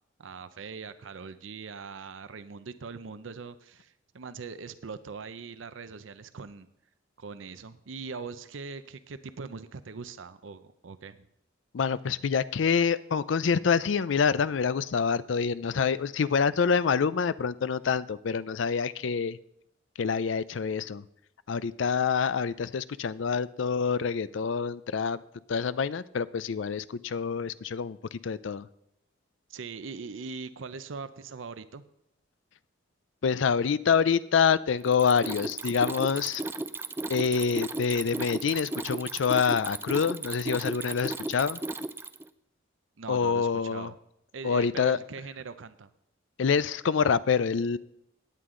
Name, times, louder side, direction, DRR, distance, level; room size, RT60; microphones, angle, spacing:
voice 1, 0.2-6.7 7.2-11.3 29.5-31.8 43.0-44.0 44.3-45.9, right 5 dB, 90° right, 12 dB, 0.6 m, -41 dB
voice 2, 11.7-19.4 20.0-21.0 21.5-25.2 25.5-28.7 33.2-36.4 37.1-41.6 43.1-43.9 44.4-45.0 46.4-47.8, left 6 dB, 75° left, 16 dB, 0.4 m, -26 dB
Mechanisms, 34.8-42.3, right 2 dB, 10° right, 0.3 m, -35 dB
16.5 x 9.6 x 3.8 m, 0.78 s
head